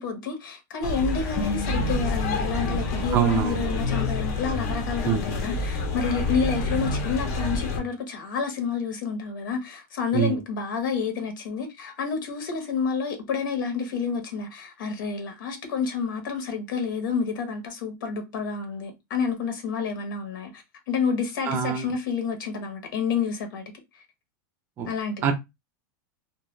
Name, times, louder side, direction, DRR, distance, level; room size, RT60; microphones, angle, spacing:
voice 1, 0.0-23.6 24.8-25.3, left 6 dB, 80° left, 1.0 m, -29 dB
sound 1, 0.8-7.8, left 2 dB, 45° left, 0.7 m, -27 dB
voice 2, 3.1-3.7 5.0-5.2 10.1-10.4 21.5-21.9 24.8-24.9 25.2-25.4, right 8 dB, 20° right, 0.4 m, -24 dB
2.3 x 2.2 x 3.1 m
supercardioid pair, 170°, 11 cm